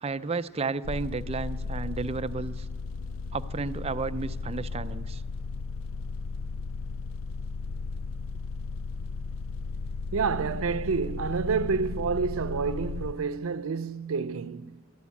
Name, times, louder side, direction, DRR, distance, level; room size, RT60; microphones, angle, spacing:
voice 1, 0.0-2.7 3.3-5.2, right 4 dB, 30° right, 0.4 m, -32 dB
sound 1, 0.8-13.1, left 4 dB, 70° left, 0.4 m, -35 dB
voice 2, 10.1-14.8, right 5 dB, 85° right, 0.5 m, -29 dB
13.5 x 11.5 x 8.3 m
head